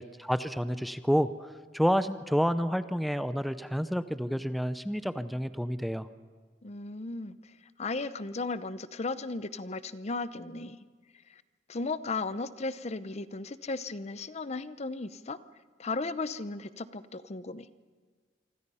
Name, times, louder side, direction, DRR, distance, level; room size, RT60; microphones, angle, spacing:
voice 1, 0.0-6.1, equal, ahead, 12 dB, 0.6 m, -29 dB
voice 2, 6.6-7.5 7.8-10.8 11.3-11.4 11.7-15.4 15.8-17.7, left 3 dB, 40° left, 14 dB, 0.7 m, -35 dB
27.0 x 25.0 x 5.6 m, 1.5 s
head